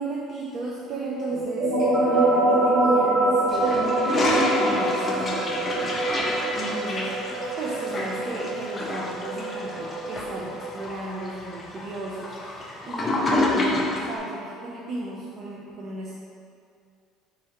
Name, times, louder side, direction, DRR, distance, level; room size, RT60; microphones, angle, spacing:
voice 1, 0.0-16.1, right 2 dB, 40° right, -4 dB, 0.4 m, -34 dB
sound 1, 1.3-10.7, right 2 dB, 90° right, 1.0 m, -25 dB
Toilet flush, 3.5-14.1, left 2 dB, 20° left, 0.4 m, -28 dB
3.5 x 3.4 x 2.9 m, 2.4 s
cardioid pair, 150°, 0 cm